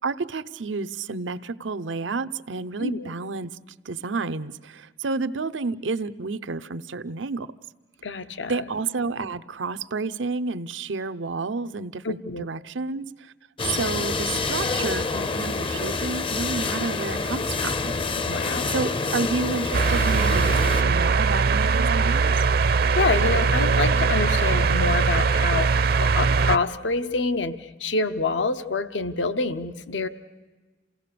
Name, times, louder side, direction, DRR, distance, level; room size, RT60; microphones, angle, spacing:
voice 1, 0.0-3.5 3.8-7.5 8.5-13.3 13.6-17.9 18.7-22.3, right 4 dB, 90° right, 13 dB, 0.7 m, -30 dB
voice 2, 2.8-3.1 8.0-8.6 12.0-12.5 18.2-18.9 22.9-25.7 26.0-30.1, left 3 dB, 75° left, 11 dB, 0.9 m, -27 dB
sound 1, 13.6-20.8, left 4 dB, 30° left, 0.6 m, -27 dB
sound 2, 19.7-26.6, right 4 dB, 55° right, 0.6 m, -21 dB
28.5 x 17.5 x 6.8 m, 1.3 s
head